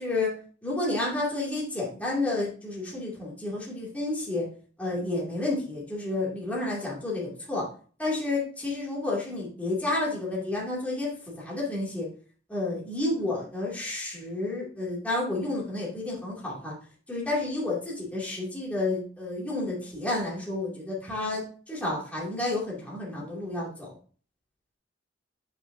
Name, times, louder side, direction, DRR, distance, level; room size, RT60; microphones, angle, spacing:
voice 1, 0.0-4.5 4.8-7.6 8.0-12.1 12.5-16.8 17.1-24.0, left 2 dB, 10° left, -6 dB, 2.4 m, -30 dB
9.2 x 5.8 x 2.7 m, 0.41 s
head